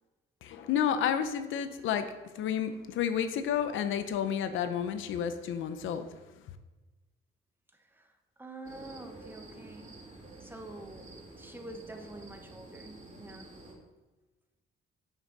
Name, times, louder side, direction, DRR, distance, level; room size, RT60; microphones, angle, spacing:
voice 1, 0.4-2.1 2.3-6.1, left 8 dB, 80° left, 9 dB, 0.8 m, -30 dB
voice 2, 8.4-10.0 10.4-13.5, right 2 dB, 10° right, 4 dB, 1.2 m, -47 dB
sound 1, 8.6-13.7, right 2 dB, 35° right, 2.7 m, -49 dB
9.3 x 6.1 x 4.0 m, 1.1 s
cardioid pair, 90°, 20 cm